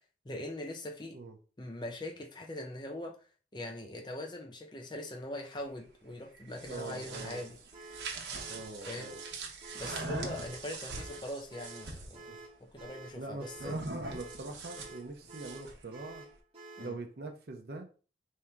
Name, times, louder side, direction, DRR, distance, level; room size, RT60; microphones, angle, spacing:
voice 1, 0.2-1.2 1.6-3.2 3.5-7.6 8.9-9.1 9.7-12.3 12.7-13.8 16.8-17.0, left 1 dB, 25° left, 2 dB, 0.6 m, -41 dB
sound 1, 6.4-12.2 13.6-15.8, right 3 dB, 80° right, 0.9 m, -42 dB
voice 2, 6.7-7.4 8.5-9.2 12.3-12.4 13.1-16.2 16.8-17.9, right 2 dB, 60° right, 3 dB, 0.6 m, -43 dB
sound 2, 7.1-17.0, right 3 dB, 35° right, 0.9 m, -50 dB
3.6 x 2.7 x 4.4 m, 0.37 s
head